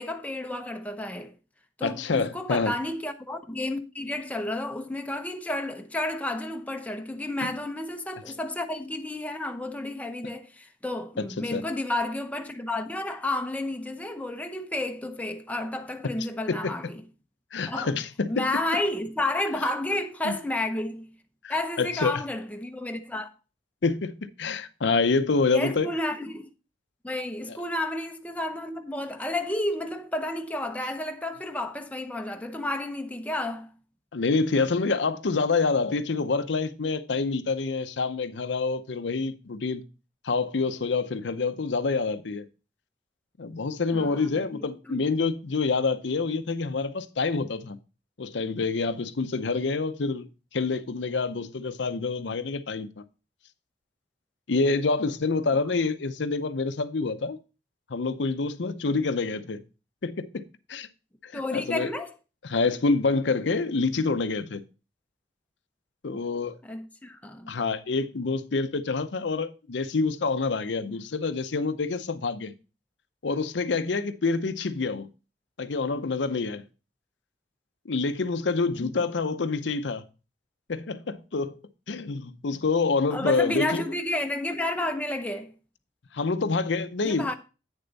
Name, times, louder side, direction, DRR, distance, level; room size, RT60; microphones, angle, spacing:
voice 1, 0.0-1.3 1.8-17.0 17.7-18.0 18.3-21.1 21.5-23.3 25.5-26.5 27.0-33.7 43.9-44.5 44.8-45.0 61.3-62.1 66.6-67.6 78.8-78.9 83.1-85.5 87.0-87.3, left 1 dB, 10° left, 0.8 m, -31 dB
voice 2, 1.8-2.7 11.5-11.6 16.5-16.7 17.5-18.4 20.2-20.3 21.4-22.2 23.8-25.9 34.1-39.8 40.2-42.5 43.4-47.8 48.2-50.3 50.5-52.9 54.5-57.4 57.9-59.6 60.0-60.4 60.7-60.9 61.2-61.9 62.4-64.6 66.0-66.5 67.5-72.5 73.2-75.1 75.6-76.6 77.9-80.0 80.7-81.6 81.9-83.8 86.1-87.3, left 4 dB, 80° left, 0.7 m, -27 dB
9.0 x 6.9 x 4.0 m
head